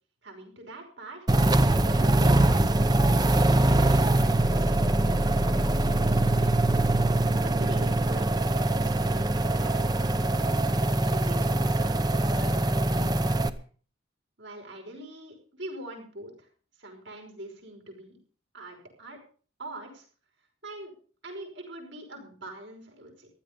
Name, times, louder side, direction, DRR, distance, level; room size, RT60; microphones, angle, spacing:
voice 1, 0.2-1.3 7.4-10.5 11.0-13.5 14.4-16.5 16.8-18.2 18.5-19.2 19.6-20.0 20.6-20.9 21.2-23.3, right 1 dB, 70° right, 2 dB, 5.5 m, -44 dB
sound 1, 1.3-13.5, right 2 dB, 20° right, 0.7 m, -23 dB
15.5 x 12.0 x 5.2 m, 0.42 s
head